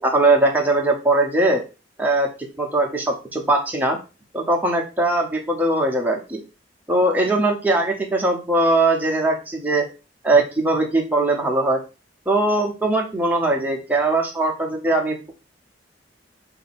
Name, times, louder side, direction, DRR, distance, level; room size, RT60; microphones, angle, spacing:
voice 1, 0.0-1.6 2.0-2.3 2.6-4.0 4.3-6.4 6.9-9.8 10.2-11.8 12.3-15.3, right 2 dB, 10° right, 0 dB, 0.8 m, -20 dB
3.9 x 2.7 x 4.2 m, 0.31 s
head